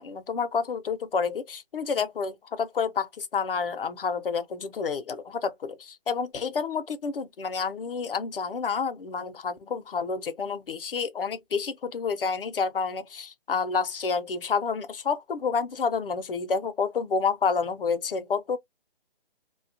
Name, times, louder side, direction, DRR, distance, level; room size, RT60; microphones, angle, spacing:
voice 1, 0.0-18.6, left 5 dB, 60° left, 0.6 m, -29 dB
2.7 x 2.3 x 2.5 m
hypercardioid pair, 180°, 31 cm